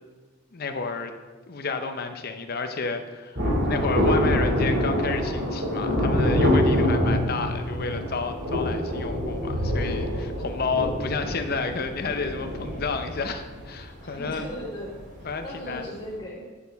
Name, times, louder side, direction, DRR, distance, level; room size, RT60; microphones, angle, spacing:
voice 1, 0.5-1.1 1.5-3.4 3.7-14.5 15.2-15.9, left 4 dB, 50° left, 7 dB, 0.6 m, -31 dB
Thunder, 3.4-15.4 15.6-15.7, left 1 dB, 60° right, 2.2 m, -25 dB
voice 2, 6.2-6.9 14.0-15.0 15.4-16.5, equal, 20° left, -9 dB, 1.7 m, -38 dB
8.8 x 6.9 x 3.5 m, 1.3 s
head